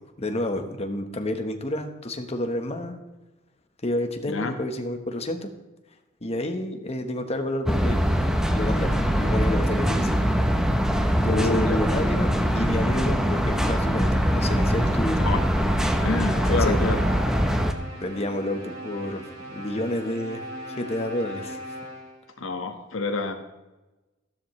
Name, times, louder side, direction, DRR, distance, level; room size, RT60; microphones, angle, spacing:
voice 1, 0.2-3.0 3.8-5.5 6.2-8.2 8.5-10.3 11.2-14.1 14.3-15.3 16.3-16.8 18.0-20.4 20.7-21.6, left 1 dB, 30° left, 6 dB, 1.2 m, -30 dB
sound 1, 7.7-17.7, equal, 5° right, 0.8 m, -22 dB
voice 2, 11.3-11.8 15.2-15.4 16.0-17.0 22.4-23.3, left 3 dB, 75° left, 5 dB, 1.5 m, -27 dB
sound 2, 13.8-22.3, equal, 75° right, 2.6 m, -39 dB
13.5 x 12.5 x 3.2 m, 1.1 s
head